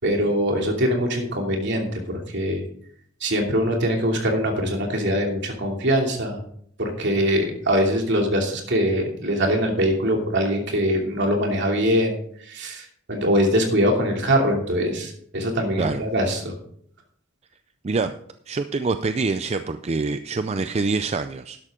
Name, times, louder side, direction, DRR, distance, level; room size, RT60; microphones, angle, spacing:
voice 1, 0.0-2.7 3.2-6.4 6.8-12.1 12.4-16.5, equal, 60° right, 1 dB, 2.8 m, -23 dB
voice 2, 18.5-21.6, right 4 dB, 30° right, 10 dB, 0.4 m, -25 dB
12.5 x 11.0 x 3.8 m, 0.65 s
head